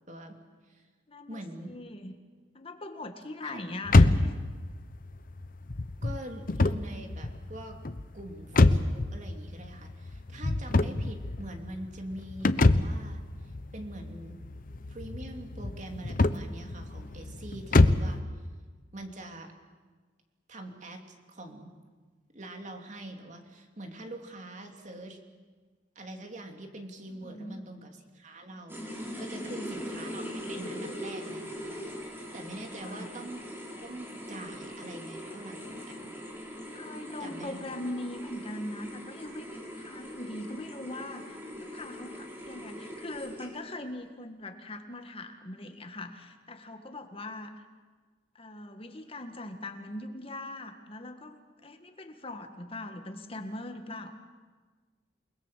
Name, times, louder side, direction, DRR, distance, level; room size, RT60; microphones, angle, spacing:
voice 1, 0.1-0.4 0.7-0.8 1.3-1.7 3.4-3.6 6.0-7.8 8.1-14.4 14.9-18.2 18.9-19.6 20.5-21.7 22.3-25.2 25.9-33.4 33.8-36.1 37.2-37.8, right 1 dB, 45° right, 4 dB, 2.8 m, -44 dB
voice 2, 1.1-1.4 1.7-2.1 2.5-4.3 27.1-27.7 29.3-29.8 32.8-33.1 36.7-47.6 48.4-54.2, left 1 dB, 35° left, 6 dB, 1.8 m, -41 dB
sound 1, 3.9-18.2, left 2 dB, 50° left, 0.9 m, -26 dB
sound 2, 28.7-43.8, equal, 15° right, 4.8 m, -41 dB
28.5 x 21.0 x 7.5 m, 1.4 s
head